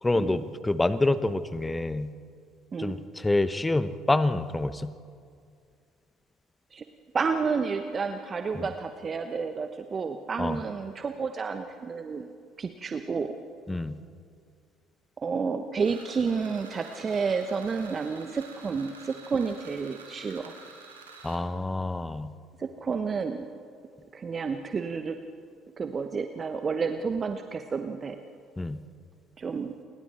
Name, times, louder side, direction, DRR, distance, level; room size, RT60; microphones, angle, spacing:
voice 1, 0.0-2.1 2.8-4.9 8.5-8.7 10.4-10.6 13.7-14.0 21.2-22.3 28.6-28.8, left 2 dB, 15° left, 14 dB, 1.0 m, -27 dB
voice 2, 7.1-12.3 12.6-13.3 15.2-20.5 22.6-23.5 24.1-25.2 25.8-28.2 29.4-29.7, right 5 dB, 35° right, 7 dB, 1.0 m, -30 dB
sound 1, 15.8-21.4, right 4 dB, 85° right, 2.2 m, -49 dB
29.5 x 22.0 x 4.3 m, 2.3 s
figure-of-eight pair, 55°, 0 cm